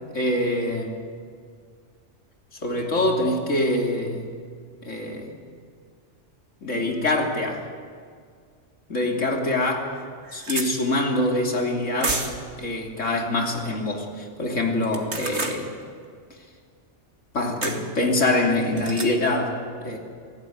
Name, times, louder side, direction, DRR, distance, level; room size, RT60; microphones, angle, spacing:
voice 1, 0.1-0.9 2.6-4.2 4.8-5.3 6.6-7.6 8.9-9.9 10.3-12.2 12.6-15.7 17.3-20.0, left 1 dB, 85° left, 1 dB, 3.5 m, -24 dB
sound 1, 9.1-9.2 9.7-9.8 10.0-10.7 12.0-12.5 14.8-15.6 17.6-17.8 18.8-19.1, right 3 dB, 65° right, 2.5 m, -29 dB
26.0 x 17.0 x 9.5 m, 2.1 s
omnidirectional pair, 1.2 m